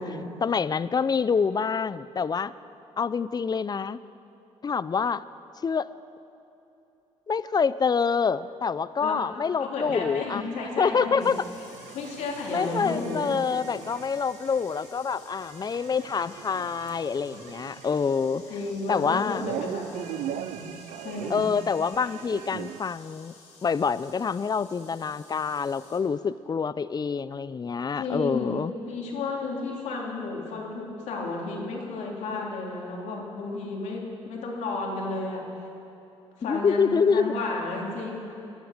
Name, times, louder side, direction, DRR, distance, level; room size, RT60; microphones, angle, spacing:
voice 1, 0.4-2.5 3.0-4.0 4.6-5.2 5.6-5.9 7.3-10.5 10.8-11.4 12.5-18.4 18.9-19.5 21.3-23.3 23.6-28.7 36.4-37.3, left 5 dB, 35° left, 16 dB, 0.5 m, -26 dB
voice 2, 9.6-11.3 11.9-13.3 18.5-20.7 21.0-21.5 28.0-28.6 28.9-35.4 36.4-38.2, left 3 dB, 80° left, -2 dB, 3.2 m, -32 dB
sound 1, 9.9-22.8, right 11 dB, 85° right, 0.5 m, -41 dB
sound 2, 11.2-26.0, left 4 dB, 65° left, 3.5 m, -53 dB
19.5 x 11.5 x 6.6 m, 2.9 s
supercardioid pair, 70°, 12 cm